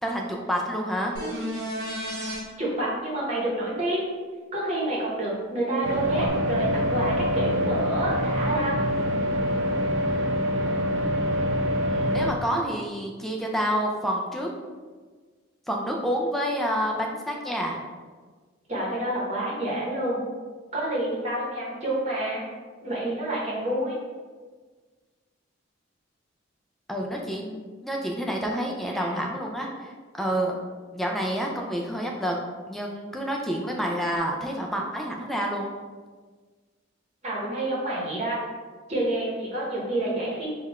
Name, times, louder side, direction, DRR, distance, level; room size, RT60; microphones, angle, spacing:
voice 1, 0.0-1.2 11.8-14.5 15.7-17.8 26.9-30.6 30.9-32.4 32.7-35.7, equal, ahead, 0 dB, 0.4 m, -28 dB
sound 1, 1.1-2.4 6.3-6.4, equal, 55° right, 0.9 m, -32 dB
voice 2, 2.6-4.0 4.5-8.8 18.7-20.2 20.7-22.4 22.8-23.9 28.9-29.1 37.2-38.4 38.9-40.5, right 1 dB, 35° right, -5 dB, 1.0 m, -28 dB
sound 2, 5.8-12.3, equal, 70° right, 0.4 m, -25 dB
3.7 x 2.4 x 4.2 m, 1.5 s
head